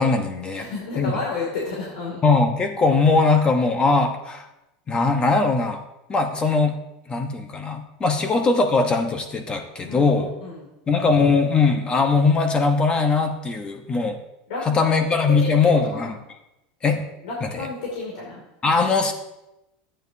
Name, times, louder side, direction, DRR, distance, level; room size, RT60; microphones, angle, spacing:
voice 1, 0.0-0.7 0.9-1.1 2.2-4.5 4.9-5.8 6.1-6.8 7.1-10.4 10.9-14.2 14.6-16.1 16.8-17.0 17.4-17.7 18.6-19.1, left 4 dB, 20° left, 5 dB, 1.1 m, -20 dB
voice 2, 0.5-2.2 9.9-10.1 10.4-10.7 14.5-15.0 15.3-15.5 15.9-16.1 17.2-18.4, left 4 dB, 85° left, -3 dB, 2.5 m, -31 dB
13.0 x 8.9 x 2.8 m, 0.90 s
supercardioid pair, 135°, 4 cm